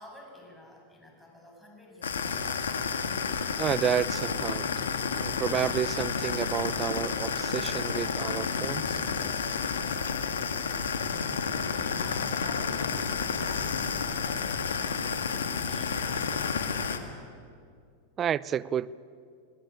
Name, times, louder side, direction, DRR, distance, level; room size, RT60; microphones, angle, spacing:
voice 1, 0.0-2.4 11.4-12.9 13.2-17.1, left 1 dB, 5° left, 7.3 m, -51 dB
sound 1, 2.0-17.0, left 6 dB, 85° left, 1.9 m, -30 dB
voice 2, 3.6-4.7 5.2-9.0 18.2-18.9, right 9 dB, 30° right, 0.6 m, -30 dB
27.5 x 19.0 x 8.5 m
hypercardioid pair, 105°, 0 cm